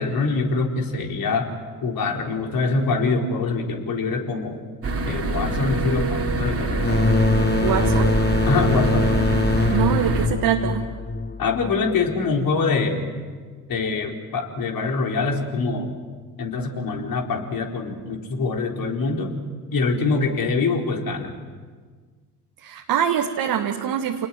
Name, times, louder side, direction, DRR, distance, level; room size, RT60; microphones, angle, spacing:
voice 1, 0.0-1.4 1.8-4.6 5.0-7.0 8.4-9.1 11.4-13.1 13.7-15.9 16.4-19.3 19.7-21.3, left 4 dB, 50° left, 2 dB, 4.4 m, -24 dB
sound 1, 4.8-10.3, right 2 dB, 30° right, 3.2 m, -25 dB
sound 2, 6.8-12.2, left 3 dB, 20° left, 1.5 m, -23 dB
voice 2, 7.6-8.2 9.7-10.9 22.6-24.3, right 9 dB, 50° right, 3 dB, 1.8 m, -24 dB
30.0 x 20.0 x 7.7 m, 1.5 s
figure-of-eight pair, 50°, 44 cm